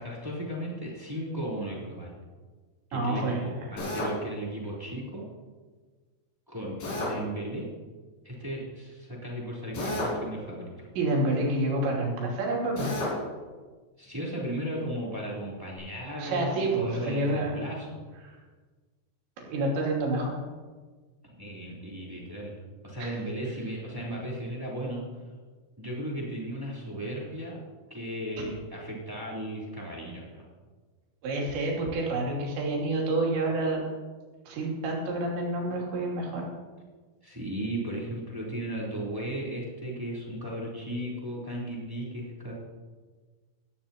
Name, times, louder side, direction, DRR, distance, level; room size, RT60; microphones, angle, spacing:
voice 1, 0.0-2.1 2.9-5.3 6.5-7.7 8.2-10.9 14.0-18.0 21.4-22.5 22.8-25.0 25.8-27.6 27.9-30.4 37.2-42.5, right 1 dB, 5° right, -5 dB, 2.7 m, -35 dB
voice 2, 2.9-3.7 11.0-12.9 16.2-17.6 18.2-18.4 19.4-20.3 23.0-23.1 31.2-33.8 34.5-36.5, right 2 dB, 80° right, -2 dB, 5.0 m, -28 dB
Drill, 3.8-4.2 6.8-7.2 9.7-10.2 12.8-13.2, left 1 dB, 50° left, 6.0 m, -31 dB
17.5 x 15.0 x 2.9 m, 1.4 s
omnidirectional pair, 5.1 m